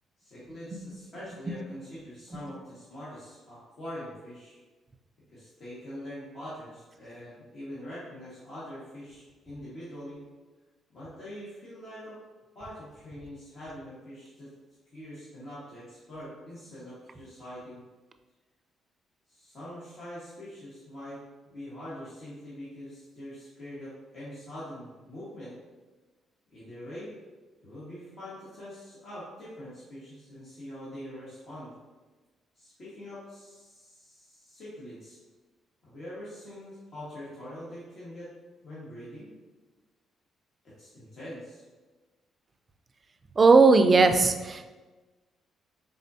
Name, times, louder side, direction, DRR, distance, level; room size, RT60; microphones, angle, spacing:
voice 1, 0.2-4.6 5.3-10.2 10.9-12.2 12.5-14.5 14.9-17.8 19.3-21.2 21.4-25.5 26.5-27.1 27.6-31.7 32.5-35.2 35.9-38.3 38.6-39.3 40.6-41.6, equal, 55° left, -11 dB, 1.5 m, -43 dB
voice 2, 43.4-44.7, right 4 dB, 35° right, 7 dB, 0.3 m, -18 dB
4.2 x 3.7 x 2.7 m, 1.3 s
cardioid pair, 90°, 0 cm